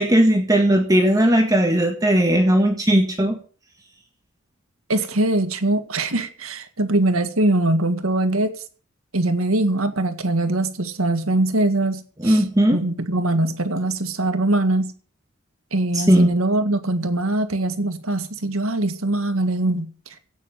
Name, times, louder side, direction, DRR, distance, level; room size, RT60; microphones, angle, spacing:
voice 1, 0.0-3.4 12.2-12.8 15.9-16.3, right 1 dB, 15° right, 3 dB, 1.8 m, -17 dB
voice 2, 4.9-8.5 9.1-12.4 12.7-14.9 15.7-19.9, right 2 dB, 90° right, 9 dB, 1.8 m, -22 dB
16.5 x 6.4 x 8.9 m, 0.40 s
head